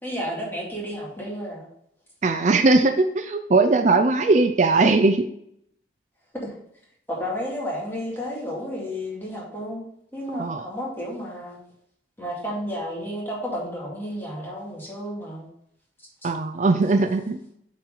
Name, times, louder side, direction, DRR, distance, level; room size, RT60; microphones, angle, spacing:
voice 1, 0.0-1.7 6.4-6.5 7.1-11.6 12.2-15.5 16.2-16.3, equal, 15° left, -4 dB, 2.4 m, -32 dB
voice 2, 2.2-5.3 10.3-10.7 16.2-17.4, right 3 dB, 40° right, 7 dB, 0.4 m, -20 dB
8.4 x 4.5 x 3.9 m, 0.70 s
head